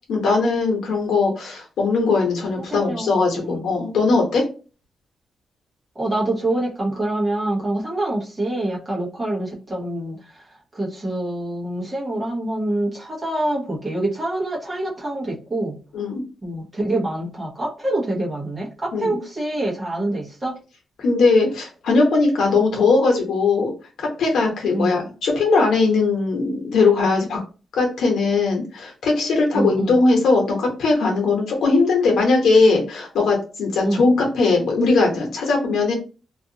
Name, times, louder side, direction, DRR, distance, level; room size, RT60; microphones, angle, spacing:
voice 1, 0.1-4.4 15.9-16.2 18.9-19.2 21.0-23.7 24.0-27.4 27.7-35.9, left 3 dB, 80° left, 1 dB, 0.9 m, -19 dB
voice 2, 2.7-3.7 6.0-10.2 10.7-15.8 16.4-20.5 24.7-25.0 29.5-30.0 33.8-34.0, right 1 dB, 20° right, -4 dB, 0.9 m, -25 dB
2.5 x 2.4 x 2.7 m, 0.36 s
wide cardioid pair, 165°, 0 cm